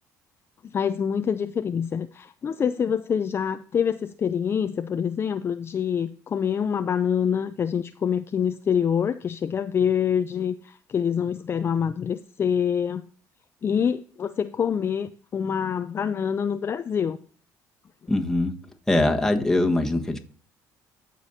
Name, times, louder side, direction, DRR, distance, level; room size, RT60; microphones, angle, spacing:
voice 1, 0.6-13.0 13.6-17.2, left 7 dB, 35° left, 10 dB, 0.4 m, -26 dB
voice 2, 18.1-18.5 18.9-20.2, left 1 dB, 5° left, 2 dB, 1.4 m, -22 dB
14.5 x 5.1 x 2.7 m, 0.43 s
cardioid pair, 95°, 7 cm